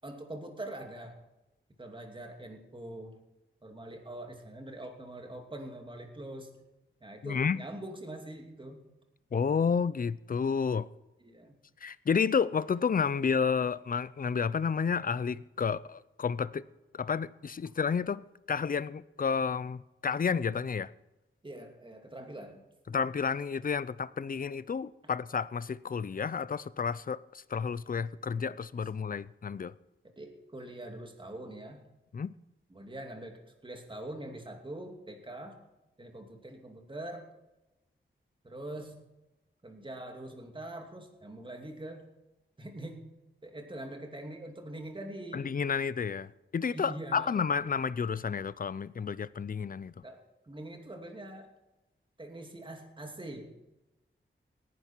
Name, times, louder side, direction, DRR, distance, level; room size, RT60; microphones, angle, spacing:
voice 1, 0.0-1.1 1.8-3.1 3.6-6.5 7.0-8.8 11.2-11.6 21.4-22.6 30.2-31.8 32.7-33.4 33.6-35.6 36.0-37.2 38.4-38.9 39.6-42.1 42.6-43.0 43.4-45.5 46.7-47.4 50.0-50.2 50.5-51.5 52.2-53.5, right 1 dB, 25° right, 2.6 m, -43 dB
voice 2, 7.2-7.6 9.3-10.9 11.8-16.6 16.9-18.2 18.5-20.9 22.9-27.2 27.5-29.7 32.1-32.3 45.3-49.9, left 6 dB, 45° left, 0.5 m, -31 dB
18.0 x 11.0 x 4.5 m
wide cardioid pair, 100°, 21 cm